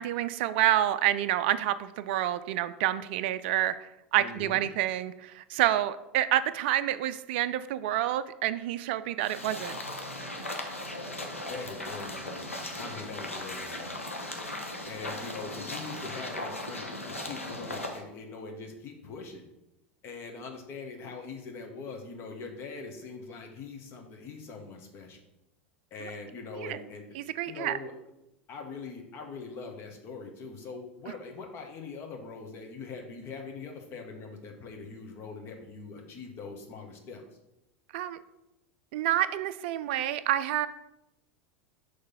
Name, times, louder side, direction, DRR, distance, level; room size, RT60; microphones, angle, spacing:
voice 1, 0.0-9.8 26.5-26.8 27.2-27.8 37.9-38.2 38.9-40.7, right 12 dB, 50° right, 12 dB, 0.3 m, -28 dB
voice 2, 4.2-4.6 11.5-14.0 14.8-19.4 20.0-25.2 25.9-27.1 27.5-27.9 28.5-37.2, left 4 dB, 35° left, 3 dB, 1.3 m, -42 dB
sound 1, 9.2-18.0, left 1 dB, 90° left, 0.9 m, -38 dB
6.5 x 3.3 x 5.7 m, 0.89 s
figure-of-eight pair, 85°, 7 cm